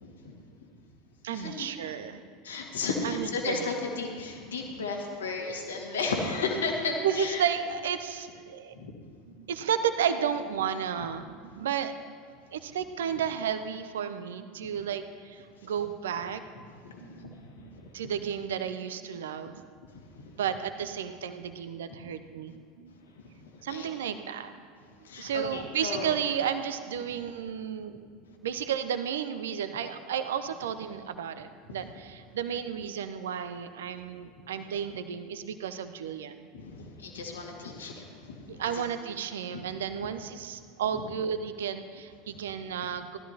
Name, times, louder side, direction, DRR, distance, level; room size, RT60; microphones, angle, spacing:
voice 1, 0.0-0.4 1.3-1.7 2.4-7.4 8.7-8.9 11.0-11.1 15.6-15.7 16.8-17.7 19.9-20.3 23.2-23.9 25.0-26.1 31.7-31.8 36.5-38.8 39.5-39.6, left 4 dB, 70° left, 0 dB, 2.0 m, -34 dB
voice 2, 1.2-2.2 3.0-3.7 7.0-8.7 9.3-12.2 12.5-16.4 17.0-19.6 20.4-22.9 23.6-24.5 25.2-28.0 28.4-36.5 38.5-43.2, right 8 dB, 65° right, 10 dB, 0.7 m, -33 dB
18.0 x 13.0 x 2.9 m, 2.1 s
figure-of-eight pair, 75°, 0 cm